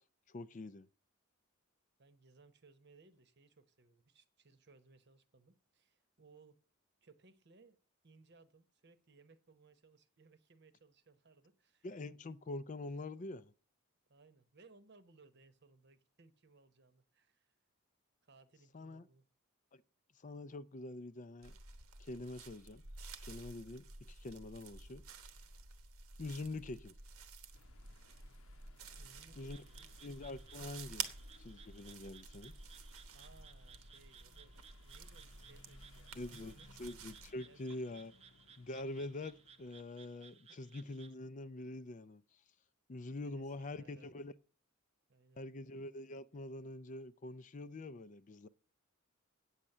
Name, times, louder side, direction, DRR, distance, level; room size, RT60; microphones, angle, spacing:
voice 1, 0.3-0.9 11.8-13.5 18.7-19.1 19.7-19.8 20.2-21.6 22.0-22.8 23.2-25.0 26.2-26.9 29.4-29.6 30.0-31.1 31.4-32.5 36.1-36.5 36.8-38.1 38.6-42.4 42.9-44.3 45.4-48.5, left 2 dB, 35° left, 0.4 m, -45 dB
voice 2, 2.0-6.6 7.0-7.8 8.0-11.9 14.1-17.5 18.2-19.3 29.0-29.9 33.1-34.6 34.8-36.7 37.4-38.1 43.2-44.3 45.1-45.4, right 3 dB, 50° right, 1.0 m, -64 dB
sound 1, 21.4-37.3, right 5 dB, 90° right, 1.2 m, -51 dB
sound 2, 27.5-39.9, left 3 dB, 80° left, 0.9 m, -66 dB
Frog, 29.4-41.1, right 7 dB, 30° right, 0.5 m, -62 dB
8.6 x 7.3 x 6.7 m
head